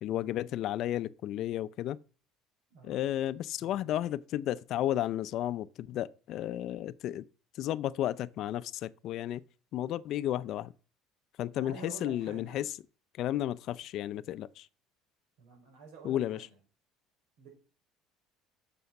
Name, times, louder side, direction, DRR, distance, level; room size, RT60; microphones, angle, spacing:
voice 1, 0.0-2.0 2.8-7.3 7.6-9.4 9.7-10.7 11.4-12.6 13.2-14.7 16.0-16.4, left 12 dB, 55° left, 0.5 m, -33 dB
voice 2, 2.7-3.0 3.6-3.9 11.5-12.6 15.4-16.6 17.4-17.5, right 3 dB, 80° right, 5.2 m, -49 dB
9.5 x 6.9 x 5.9 m
cardioid pair, 125°, 0 cm